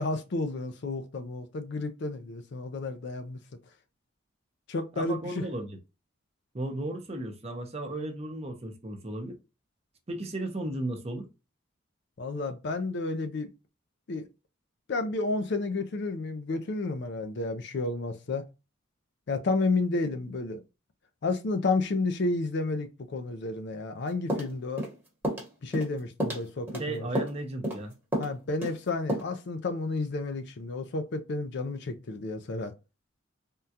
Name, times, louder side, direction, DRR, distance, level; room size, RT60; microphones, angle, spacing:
voice 1, 0.0-3.4 4.7-5.4 12.2-13.5 14.1-14.3 14.9-18.4 19.3-20.6 21.2-24.8 25.6-27.1 28.2-32.7, left 3 dB, 60° left, 0.5 m, -31 dB
voice 2, 5.0-5.8 6.5-9.4 10.1-11.3 26.8-27.9, right 1 dB, 35° right, 0.7 m, -35 dB
sound 1, 24.3-24.9 25.2-25.5 25.7-25.9 26.2-26.8 27.1-27.4 27.6-27.8 28.1-28.3 28.6-28.8 29.1-29.2, equal, 10° right, 1.1 m, -31 dB
3.6 x 2.3 x 2.7 m
head